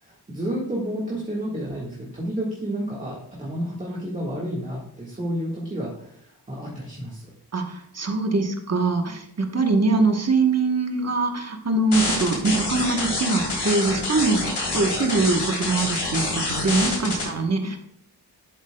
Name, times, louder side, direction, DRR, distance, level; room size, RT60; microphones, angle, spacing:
voice 1, 0.0-7.3, equal, 20° right, -4 dB, 1.6 m, -31 dB
voice 2, 7.5-17.8, right 3 dB, 40° right, 4 dB, 1.1 m, -23 dB
sound 1, 11.9-17.2, left 2 dB, 80° left, 3.3 m, -26 dB
11.5 x 8.0 x 2.2 m, 0.73 s
wide cardioid pair, 140°, 40 cm